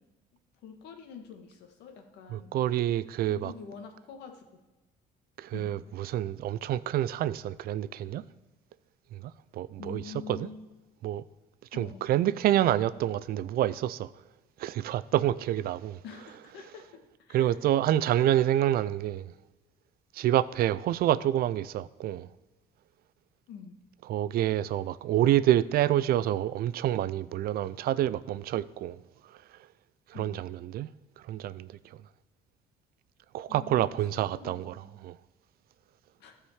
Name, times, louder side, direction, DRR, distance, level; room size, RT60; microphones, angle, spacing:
voice 1, 0.6-2.5 3.3-4.6 5.5-5.7 9.8-10.7 11.7-12.1 16.0-17.6 23.5-23.8 30.1-30.4 33.5-34.9 36.2-36.3, left 6 dB, 80° left, 1.6 m, -46 dB
voice 2, 2.3-3.5 5.4-8.2 9.1-10.5 11.0-11.2 11.7-14.1 14.6-16.0 17.3-19.3 20.1-22.3 24.1-29.0 30.1-30.9 31.3-32.0 33.3-35.2, right 12 dB, 65° right, 0.4 m, -28 dB
13.5 x 4.9 x 7.2 m
cardioid pair, 110°, 17 cm